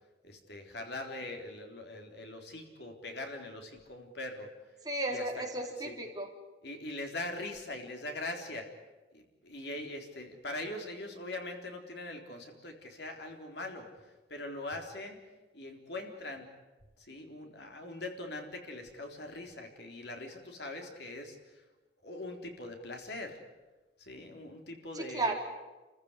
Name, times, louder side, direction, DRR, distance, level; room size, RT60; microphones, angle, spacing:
voice 1, 0.2-4.5 5.1-5.4 5.8-6.0 6.6-8.7 9.1-15.2 15.5-16.5 17.0-21.6 22.0-23.4 24.0-25.3, left 2 dB, 60° left, 3 dB, 3.8 m, -42 dB
voice 2, 4.8-6.3 24.9-25.3, right 2 dB, 20° right, 0 dB, 3.7 m, -34 dB
29.5 x 15.0 x 9.8 m, 1.2 s
head